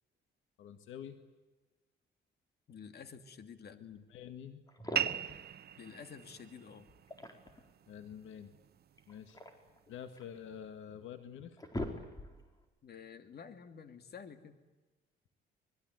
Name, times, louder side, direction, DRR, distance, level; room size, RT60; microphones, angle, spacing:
voice 1, 0.6-1.2 3.7-4.6 7.9-8.5 9.1-9.4 9.9-11.6, left 9 dB, 85° left, 8 dB, 1.9 m, -47 dB
voice 2, 2.7-3.8 5.8-6.9 12.8-14.6, left 6 dB, 55° left, 8 dB, 2.5 m, -50 dB
sound 1, 4.7-5.4 6.9-7.7 9.0-10.4 11.0-11.1 11.4-12.5, left 1 dB, 20° left, 4.4 m, -43 dB
sound 2, 4.9-10.0, right 10 dB, 55° right, 0.8 m, -41 dB
25.5 x 21.5 x 9.4 m, 1.2 s
cardioid pair, 90°, 20 cm